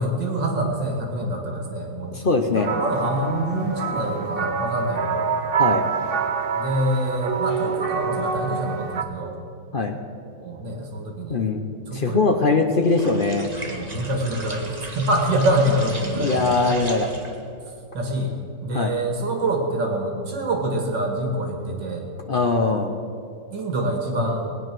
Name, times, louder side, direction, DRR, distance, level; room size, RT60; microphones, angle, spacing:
voice 1, 0.0-2.2 2.7-5.3 6.5-9.4 10.4-11.5 11.9-12.2 13.6-16.8 17.9-18.4 18.6-22.1 23.5-24.5, right 1 dB, 75° right, 1 dB, 2.6 m, -25 dB
voice 2, 2.1-2.7 5.6-5.8 9.7-10.0 11.3-13.5 16.2-17.3 18.7-18.9 22.3-23.0, left 3 dB, 45° left, 4 dB, 0.7 m, -22 dB
sound 1, 2.6-9.0, right 5 dB, 55° right, 0.6 m, -26 dB
sound 2, 12.8-17.5, right 1 dB, 25° right, 1.5 m, -36 dB
20.5 x 9.5 x 6.1 m, 2.5 s
omnidirectional pair, 2.0 m